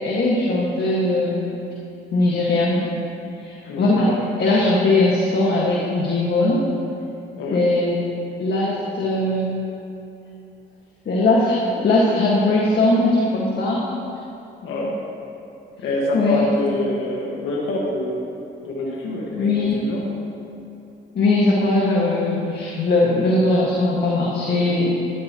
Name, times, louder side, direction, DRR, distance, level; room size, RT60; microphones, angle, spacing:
voice 1, 0.0-1.6 2.1-2.9 3.4-4.1 4.4-6.7 7.5-8.0 8.4-9.5 11.1-13.8 16.1-16.5 19.3-19.8 21.2-24.9, left 2 dB, 55° left, -4 dB, 1.7 m, -20 dB
voice 2, 3.6-4.2 7.3-7.6 14.6-14.9 15.8-18.2 18.6-20.1 24.5-24.7, left 1 dB, 85° left, -3 dB, 1.7 m, -26 dB
13.0 x 12.0 x 3.0 m, 2.7 s
cardioid pair, 90°, 20 cm